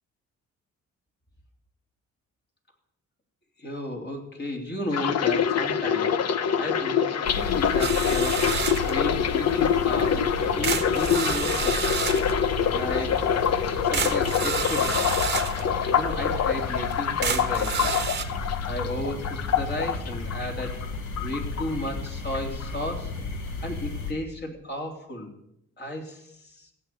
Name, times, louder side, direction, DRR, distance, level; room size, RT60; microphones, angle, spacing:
voice 1, 3.6-12.0 12.7-13.3 13.7-15.0 15.6-18.1 18.7-20.9 21.2-23.1 23.6-25.3 25.8-26.7, left 1 dB, 35° left, 2 dB, 3.5 m, -34 dB
sound 1, 4.9-20.9 21.2-22.1 22.3-22.7, left 8 dB, 55° left, 1.0 m, -25 dB
sound 2, 7.2-24.1, left 3 dB, 75° left, 2.6 m, -34 dB
sound 3, 7.8-9.0 10.0-10.1 10.6-12.3 13.4-13.5 13.9-15.6 16.2-16.3 16.9-17.0 17.2-18.2, right 6 dB, 35° right, 1.3 m, -29 dB
15.5 x 7.9 x 8.3 m, 0.78 s
cardioid pair, 90°, 30 cm